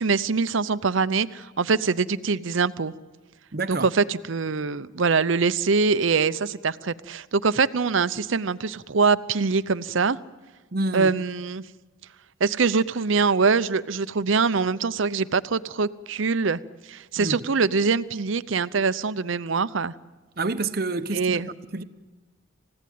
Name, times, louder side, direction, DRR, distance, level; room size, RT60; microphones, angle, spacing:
voice 1, 0.0-2.9 3.7-10.2 10.9-11.6 12.4-16.6 16.9-20.0 21.1-21.5, right 4 dB, 75° right, 0.7 m, -23 dB
voice 2, 3.5-3.9 10.7-11.1 17.2-17.4 20.4-21.8, right 2 dB, 50° right, 0.9 m, -28 dB
28.5 x 16.0 x 9.4 m
head